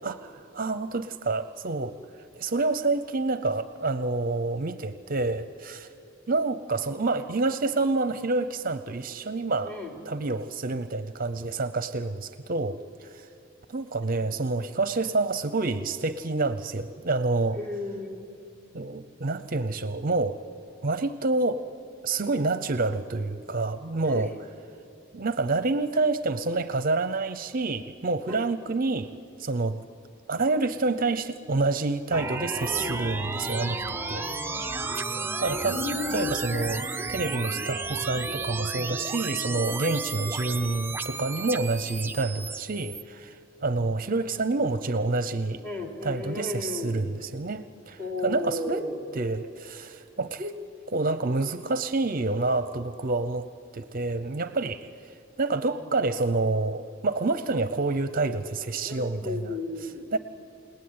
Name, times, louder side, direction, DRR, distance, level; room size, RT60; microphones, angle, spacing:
voice 1, 0.0-2.0 2.4-5.9 6.3-9.8 10.1-13.3 13.7-17.6 18.7-20.5 20.8-21.6 22.0-24.5 25.1-29.1 29.4-29.8 30.3-34.3 35.4-35.8 36.1-45.6 46.0-48.9 49.1-50.6 50.9-53.5 53.7-60.2, right 3 dB, 45° right, 12 dB, 0.7 m, -28 dB
voice 2, 17.6-18.2 24.0-24.3 28.3-28.5 32.7-33.0 35.5-36.4 43.6-43.7 45.6-47.0 48.0-49.1 55.6-55.8 58.8-60.1, left 2 dB, 10° left, 2 dB, 3.4 m, -34 dB
sound 1, 32.1-43.0, right 3 dB, 10° right, 0.7 m, -33 dB
29.5 x 18.5 x 9.5 m, 2.6 s
head